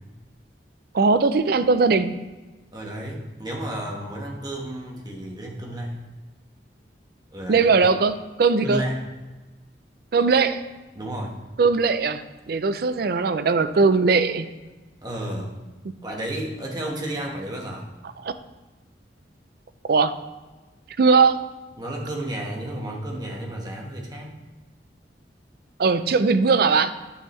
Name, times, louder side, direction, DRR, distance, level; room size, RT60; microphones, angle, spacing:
voice 1, 0.9-2.2 7.5-8.8 10.1-10.6 11.6-14.5 18.2-18.3 19.8-20.1 21.0-21.4 25.8-26.9, right 4 dB, 60° right, 11 dB, 0.4 m, -19 dB
voice 2, 2.7-6.0 7.3-7.7 8.6-9.0 10.9-11.3 15.0-15.5 16.0-17.9 21.8-24.4, right 1 dB, 25° right, -1 dB, 1.3 m, -32 dB
9.8 x 5.6 x 3.1 m, 1.2 s
head